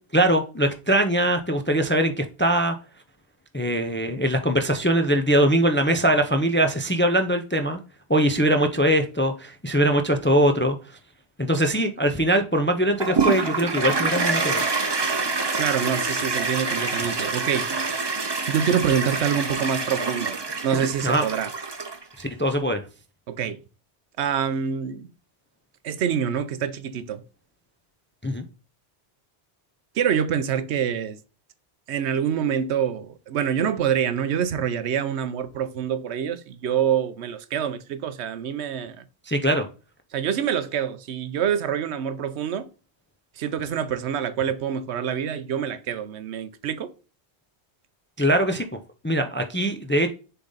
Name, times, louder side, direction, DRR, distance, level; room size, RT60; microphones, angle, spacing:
voice 1, 0.1-2.7 3.5-7.8 8.1-10.8 11.4-14.6 21.0-21.2 22.2-22.8 28.2-28.4 39.3-39.6 48.2-48.6 49.0-50.1, right 1 dB, 15° left, 0.4 m, -22 dB
Toilet flush, 13.0-22.2, right 4 dB, 30° right, 0.6 m, -26 dB
voice 2, 15.6-17.8 18.5-20.4 20.6-21.5 23.3-23.6 24.2-25.1 25.8-27.2 29.9-31.2 31.9-39.0 40.1-42.7 43.4-46.9, right 8 dB, 80° right, 0.9 m, -26 dB
6.8 x 3.9 x 3.9 m
omnidirectional pair, 1.1 m